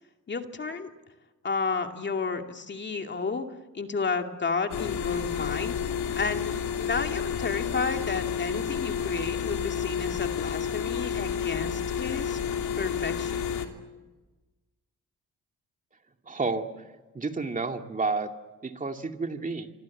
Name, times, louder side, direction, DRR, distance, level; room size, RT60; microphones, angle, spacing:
voice 1, 0.3-0.9 1.4-3.5 3.7-5.8 6.2-12.4 12.8-13.5, left 4 dB, 35° left, 5 dB, 2.5 m, -32 dB
sound 1, 4.7-13.7, left 7 dB, 75° left, 3.0 m, -30 dB
voice 2, 16.3-16.7 17.1-18.3 18.6-19.7, right 3 dB, 25° right, 5 dB, 2.4 m, -30 dB
26.0 x 26.0 x 8.5 m, 1.2 s
cardioid pair, 90°, 30 cm